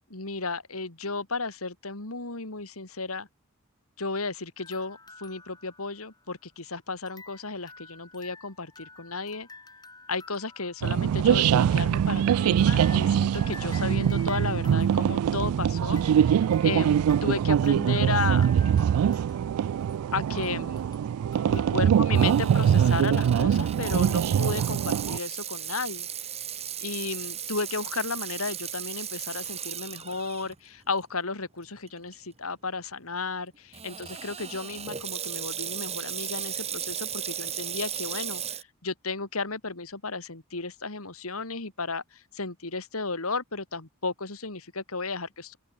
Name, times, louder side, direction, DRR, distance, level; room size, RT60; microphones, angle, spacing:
voice 1, 0.1-3.3 4.0-9.5 10.1-18.5 20.1-20.8 21.5-26.1 26.8-45.6, left 4 dB, 75° left, 2.9 m, -34 dB
sound 1, 4.6-6.6 7.1-21.7, left 3 dB, 20° left, 5.8 m, -51 dB
sound 2, 10.8-25.2, right 8 dB, 80° right, 0.3 m, -23 dB
Water tap faucet / Sink (filling or washing), 22.1-30.5 31.0-31.1 31.9-32.1 33.7-38.6, right 9 dB, 30° right, 1.4 m, -36 dB
open air
head